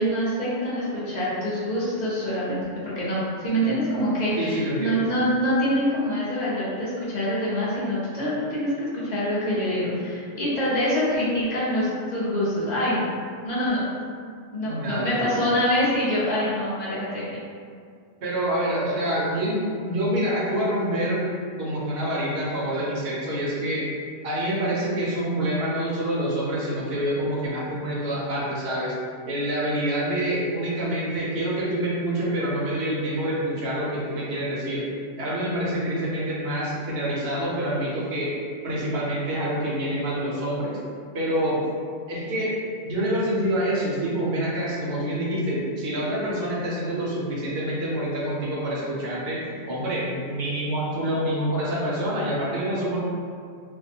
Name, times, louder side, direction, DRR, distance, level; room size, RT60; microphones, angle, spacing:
voice 1, 0.0-13.0 13.4-13.8 14.5-17.4, equal, 50° left, -8 dB, 0.6 m, -25 dB
voice 2, 4.4-5.1 14.6-15.5 18.2-21.3 21.6-23.9 24.2-28.9 29.3-34.9 35.2-38.3 38.6-40.8 41.1-41.6 42.1-42.6 42.8-53.0, right 1 dB, 60° right, -6 dB, 0.8 m, -26 dB
2.5 x 2.1 x 2.7 m, 2.2 s
omnidirectional pair, 1.3 m